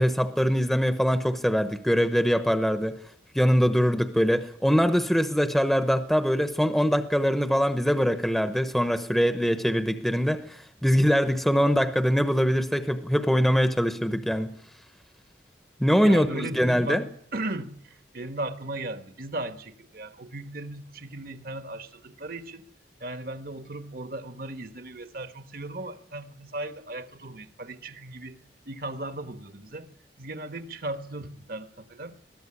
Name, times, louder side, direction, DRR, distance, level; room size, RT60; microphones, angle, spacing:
voice 1, 0.0-3.0 3.3-14.5 15.8-17.0, equal, ahead, 0.9 m, -23 dB
voice 2, 16.0-17.1 17.3-22.6 23.0-28.4 28.6-29.9 30.2-32.2, right 2 dB, 50° right, 1.3 m, -37 dB
22.0 x 14.0 x 9.8 m
head